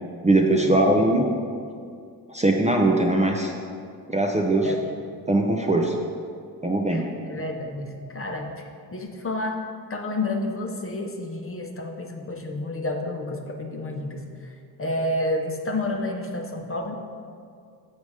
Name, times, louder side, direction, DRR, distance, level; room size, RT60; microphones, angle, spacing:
voice 1, 0.2-1.2 2.3-3.5 4.1-4.7 5.3-5.9 6.6-7.0, right 2 dB, 15° right, 1 dB, 0.7 m, -20 dB
voice 2, 6.9-9.6 9.9-14.5 14.8-16.9, left 1 dB, 30° left, 2 dB, 0.9 m, -30 dB
7.1 x 4.0 x 4.9 m, 2.2 s
hypercardioid pair, 45°, 47 cm